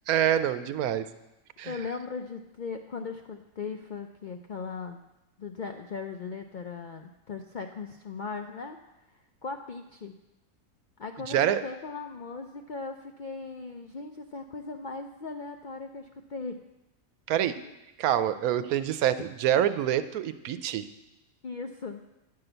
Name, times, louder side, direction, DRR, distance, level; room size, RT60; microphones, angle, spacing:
voice 1, 0.1-1.1 1.6-1.7 11.3-11.6 17.3-17.6 18.0-20.9, right 10 dB, 85° right, 12 dB, 1.1 m, -26 dB
voice 2, 1.6-5.0 5.4-8.8 9.4-10.1 11.0-16.6 17.6-17.7 21.4-22.0, left 4 dB, 70° left, 5 dB, 0.4 m, -38 dB
9.5 x 5.7 x 7.9 m, 0.97 s
omnidirectional pair, 1.5 m